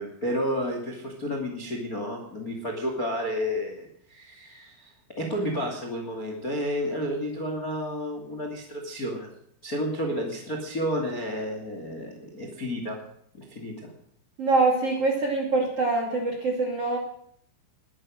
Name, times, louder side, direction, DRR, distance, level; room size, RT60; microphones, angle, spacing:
voice 1, 0.0-9.3 9.6-13.0 13.4-13.9, equal, 30° left, 3 dB, 1.6 m, -31 dB
voice 2, 14.4-17.0, right 3 dB, 40° right, 1 dB, 2.3 m, -24 dB
20.5 x 11.0 x 6.5 m, 0.66 s
omnidirectional pair, 6.0 m